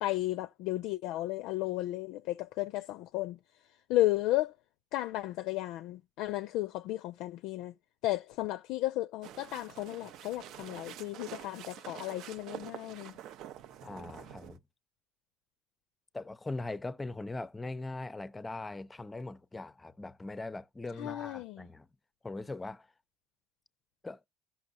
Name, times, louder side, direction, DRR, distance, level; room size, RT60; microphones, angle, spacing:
voice 1, 0.0-3.4 3.9-4.5 4.9-7.7 8.0-13.1 21.0-21.7, left 16 dB, 70° left, 0.4 m, -33 dB
sound 1, 9.2-14.6, right 11 dB, 65° right, 0.6 m, -47 dB
voice 2, 13.8-14.6 16.1-21.9 22.2-22.9 24.0-24.2, left 2 dB, 15° left, 0.5 m, -40 dB
16.0 x 6.0 x 2.6 m
supercardioid pair, 85°, 0 cm